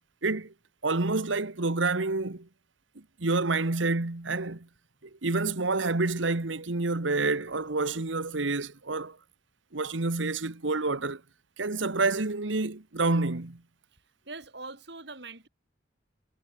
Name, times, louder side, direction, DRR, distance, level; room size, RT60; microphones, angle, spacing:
voice 1, 0.2-0.5 0.8-2.5 2.9-4.7 5.2-9.2 9.7-11.2 11.6-13.6, right 3 dB, 85° right, 1.4 m, -28 dB
voice 2, 14.2-15.5, right 3 dB, 65° right, 5.0 m, -42 dB
head